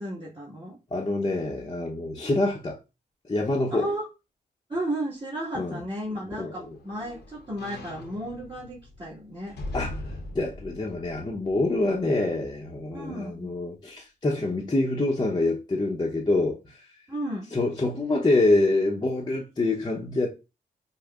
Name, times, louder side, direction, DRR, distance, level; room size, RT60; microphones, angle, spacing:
voice 1, 0.0-0.8 3.7-4.1 4.7-9.6 12.9-13.5 17.1-17.5, right 1 dB, 30° right, 1.6 m, -33 dB
voice 2, 0.9-2.8 3.3-3.9 5.5-5.8 6.4-6.8 9.7-16.8 17.5-20.3, left 2 dB, 25° left, 0.7 m, -26 dB
sound 1, 5.8-12.2 12.6-12.7, left 2 dB, 85° left, 0.9 m, -41 dB
5.1 x 2.1 x 2.3 m
cardioid pair, 55°, 17 cm